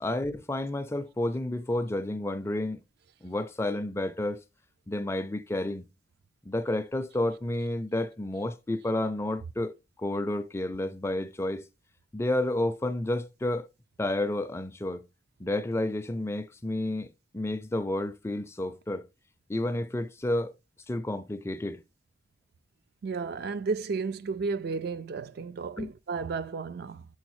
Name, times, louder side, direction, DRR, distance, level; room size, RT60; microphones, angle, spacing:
voice 1, 0.0-2.8 3.2-4.4 4.9-5.8 6.4-9.7 10.0-11.7 12.1-13.7 14.0-15.0 15.4-19.1 19.5-20.5 20.9-21.8 25.8-25.9, left 1 dB, 15° left, 0.4 m, -30 dB
voice 2, 23.0-27.1, right 4 dB, 55° right, 0.3 m, -33 dB
7.0 x 4.4 x 3.0 m
head